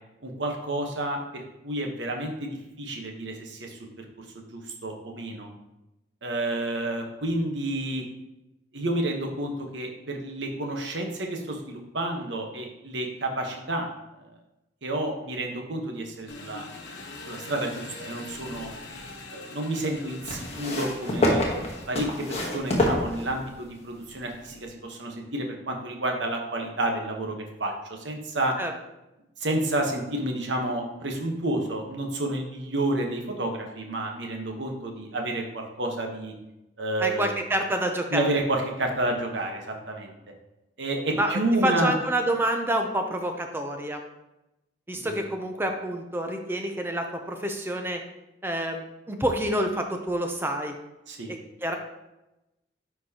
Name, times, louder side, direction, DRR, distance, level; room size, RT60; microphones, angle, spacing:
voice 1, 0.2-4.0 4.3-5.5 6.2-8.0 8.7-13.9 14.8-16.7 17.3-18.7 19.3-21.4 21.9-28.6 29.4-36.3 36.8-37.3 38.1-40.1 40.8-41.9 45.0-45.1 51.1-51.3, right 1 dB, 75° right, 2 dB, 1.1 m, -30 dB
Engine, 16.3-22.8, left 2 dB, 65° left, 1.0 m, -43 dB
sound 1, 18.3-19.1 20.3-23.7 24.6-24.7, left 1 dB, 35° left, 1.2 m, -27 dB
voice 2, 37.0-38.3 41.2-44.0 44.9-48.0 48.4-50.8 51.3-51.7, right 1 dB, 10° right, 4 dB, 0.5 m, -28 dB
9.8 x 4.5 x 2.9 m, 0.94 s
head